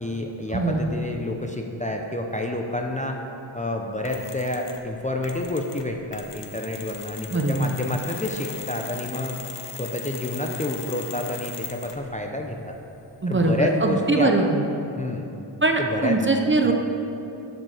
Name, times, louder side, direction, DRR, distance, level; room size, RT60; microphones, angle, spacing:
voice 1, 0.0-3.2 3.5-9.4 9.8-12.8 13.3-14.3 15.0-15.3 15.8-16.2 16.6-16.7, left 1 dB, 15° left, 2 dB, 0.5 m, -29 dB
voice 2, 0.5-0.9 7.3-7.7 13.2-14.6 15.6-16.7, right 2 dB, 25° right, 3 dB, 0.6 m, -21 dB
Mechanisms, 4.0-4.9 5.2-12.1, left 6 dB, 65° left, 0.8 m, -39 dB
7.4 x 5.2 x 6.4 m, 2.9 s
wide cardioid pair, 65°, 46 cm